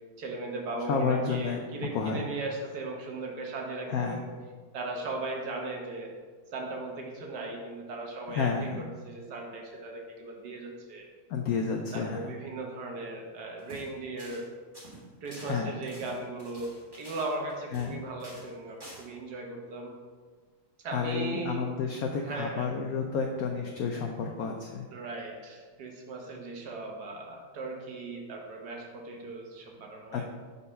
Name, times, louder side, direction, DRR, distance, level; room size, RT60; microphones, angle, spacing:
voice 1, 0.2-4.3 4.7-6.1 6.5-11.1 11.9-14.4 15.2-16.7 17.0-19.9 20.8-21.6 22.2-22.7 24.9-30.2, right 2 dB, 60° right, 0 dB, 1.4 m, -37 dB
voice 2, 0.9-1.6 1.9-2.3 3.9-4.2 8.3-8.9 11.3-12.3 15.4-15.7 17.7-18.0 20.9-24.9 30.1-30.3, left 5 dB, 80° left, 2 dB, 0.8 m, -30 dB
sound 1, 13.6-13.9 14.2-14.5 14.7-17.9 18.2-18.5 18.8-19.0, right 1 dB, 15° right, 1.4 m, -48 dB
5.2 x 4.3 x 5.4 m, 1.5 s
omnidirectional pair, 2.1 m